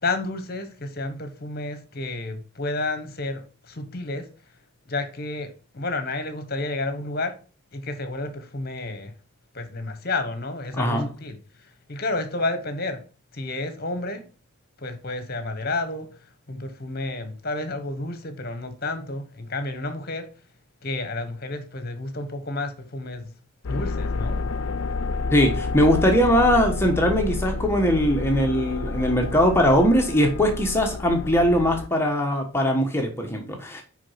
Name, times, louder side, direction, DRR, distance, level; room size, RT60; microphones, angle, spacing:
voice 1, 0.0-4.3 4.9-7.4 7.7-9.1 9.5-13.0 13.3-14.3 14.8-16.1 16.5-20.3 20.8-23.3 23.7-24.5, left 2 dB, 45° left, 1.2 m, -31 dB
voice 2, 10.8-11.1 25.3-33.8, equal, 10° left, 1.2 m, -21 dB
sound 1, 23.6-31.9, left 3 dB, 70° left, 0.5 m, -29 dB
6.3 x 5.1 x 5.7 m
head